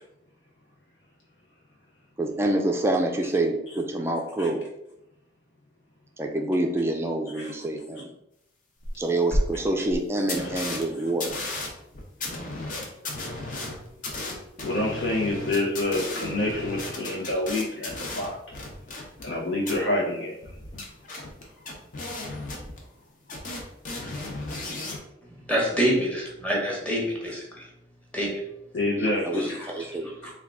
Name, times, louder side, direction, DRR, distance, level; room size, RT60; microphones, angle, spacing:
voice 1, 2.2-4.7 6.2-8.1 9.0-11.4 29.0-30.1, right 1 dB, 15° right, 3 dB, 0.4 m, -27 dB
sound 1, 8.8-8.9 9.3-9.4 9.9-10.0 10.3-10.8 11.2-19.3 19.6-19.7 20.4-23.0 23.3-25.0, left 2 dB, 45° left, 0.7 m, -34 dB
voice 2, 14.6-18.4 19.2-20.4 28.7-29.6, left 2 dB, 80° left, -3 dB, 0.7 m, -27 dB
voice 3, 25.5-27.7 28.1-28.4 29.4-29.5 30.2-30.3, equal, 5° left, -3 dB, 0.9 m, -26 dB
3.6 x 2.3 x 3.5 m, 0.82 s
head